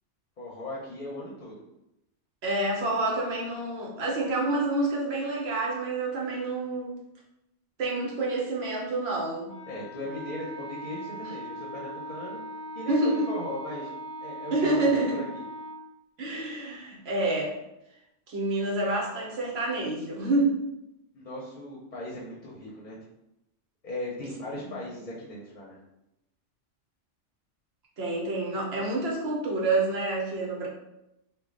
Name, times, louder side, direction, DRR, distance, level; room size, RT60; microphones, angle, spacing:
voice 1, 0.4-1.6 9.7-12.4 12.7-13.9 14.2-14.8 15.2-15.4 21.1-23.0 23.8-25.8, left 1 dB, 45° left, -5 dB, 0.7 m, -38 dB
voice 2, 2.4-6.9 7.8-9.5 12.9-13.3 14.5-15.2 16.2-17.6 18.3-20.6 28.0-30.7, right 2 dB, 60° right, -3 dB, 1.1 m, -28 dB
Wind instrument woodwind instrument, 9.5-15.8, right 1 dB, 5° left, 0.5 m, -40 dB
3.0 x 2.3 x 3.7 m, 0.87 s
omnidirectional pair, 1.2 m